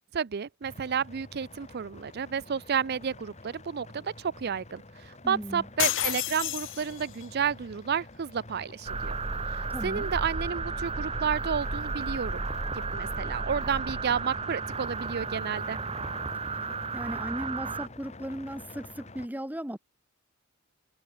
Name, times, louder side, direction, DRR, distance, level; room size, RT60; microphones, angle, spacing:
voice 1, 0.1-9.2 9.5-12.4 12.9-15.8, right 7 dB, 50° right, 0.5 m, -31 dB
sound 1, 0.6-19.3, left 2 dB, 35° left, 2.8 m, -47 dB
voice 2, 5.2-5.7 9.7-10.1 16.9-19.8, equal, 10° right, 1.4 m, -36 dB
sound 2, 5.8-7.3, left 13 dB, 60° left, 1.4 m, -30 dB
sound 3, 8.9-17.9, right 4 dB, 25° right, 1.2 m, -33 dB
head